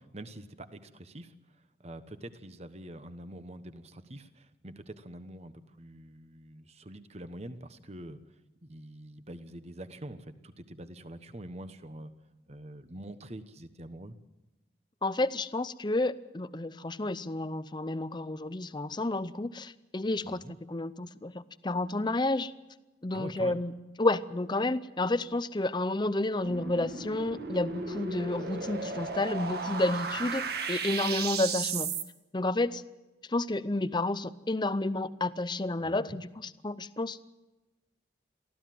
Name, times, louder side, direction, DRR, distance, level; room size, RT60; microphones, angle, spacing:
voice 1, 0.0-1.3 1.8-8.2 8.6-12.1 12.5-14.2 20.2-20.5 23.1-23.6 35.8-36.2, right 1 dB, 35° right, 11 dB, 1.2 m, -45 dB
voice 2, 15.0-22.5 23.0-23.7 24.0-31.9 32.3-32.8 33.3-37.2, left 2 dB, 25° left, 15 dB, 0.6 m, -31 dB
sound 1, 26.4-32.0, right 4 dB, 55° right, 1.8 m, -35 dB
23.0 x 15.0 x 7.8 m, 1.1 s
head